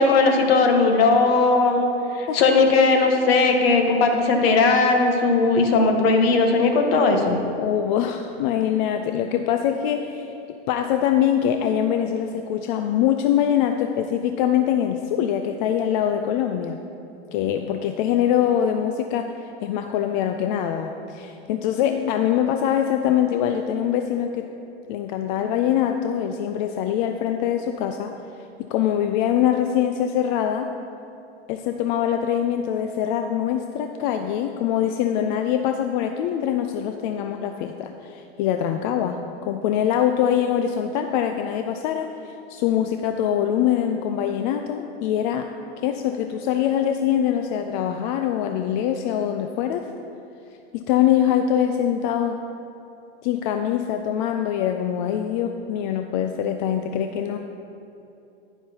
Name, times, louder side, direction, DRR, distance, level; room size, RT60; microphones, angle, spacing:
voice 1, 0.0-1.9 2.1-7.4, left 3 dB, 60° left, 4 dB, 1.3 m, -18 dB
voice 2, 7.6-16.8 17.3-19.3 19.6-24.5 24.9-28.1 28.7-30.7 31.5-45.5 45.8-49.8 50.7-52.4 53.2-57.4, left 10 dB, 45° left, 6 dB, 0.5 m, -23 dB
10.0 x 9.8 x 2.9 m, 2.7 s
hypercardioid pair, 105°, 33 cm